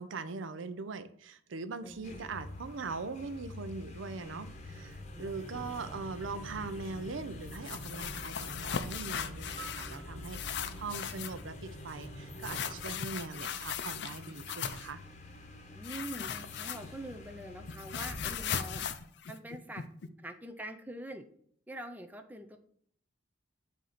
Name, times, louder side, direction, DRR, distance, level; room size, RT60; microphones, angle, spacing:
voice 1, 0.0-15.0, right 4 dB, 80° right, 0.5 m, -41 dB
voice 2, 1.8-2.3 5.1-5.6 10.6-10.8 15.7-18.8 19.3-19.8 20.2-21.2 21.7-22.6, right 1 dB, 10° right, 0.4 m, -45 dB
sound 1, 1.9-19.0, left 1 dB, 35° left, 0.9 m, -46 dB
sound 2, 7.5-10.0 10.2-11.4 12.4-14.9 15.8-17.1 17.4-20.1, left 8 dB, 60° left, 0.4 m, -38 dB
sound 3, 9.6-12.0, right 5 dB, 35° right, 1.4 m, -53 dB
7.5 x 2.7 x 5.7 m
head